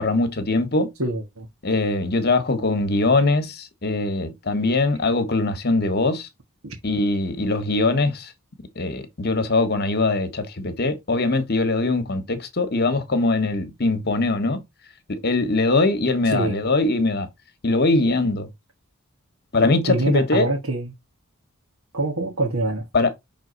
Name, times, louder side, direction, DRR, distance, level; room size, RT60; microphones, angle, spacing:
voice 1, 0.0-0.9 1.6-6.3 6.8-8.3 8.7-14.6 15.1-17.3 17.6-18.5 19.5-20.5 22.9-23.1, left 2 dB, 50° left, 1.3 m, -22 dB
voice 2, 1.0-1.5 6.6-6.8 16.2-16.6 19.9-20.9 21.9-22.8, right 2 dB, 75° right, 1.6 m, -25 dB
6.2 x 3.9 x 3.9 m
head